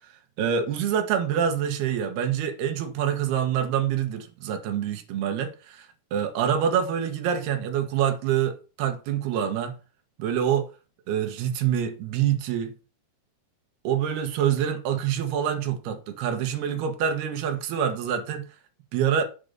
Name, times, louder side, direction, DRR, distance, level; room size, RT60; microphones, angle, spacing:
voice 1, 0.4-9.7 10.2-10.7 11.1-12.7 13.8-18.5 18.9-19.2, right 9 dB, 80° right, 3.3 m, -26 dB
8.6 x 5.2 x 6.7 m
omnidirectional pair, 4.6 m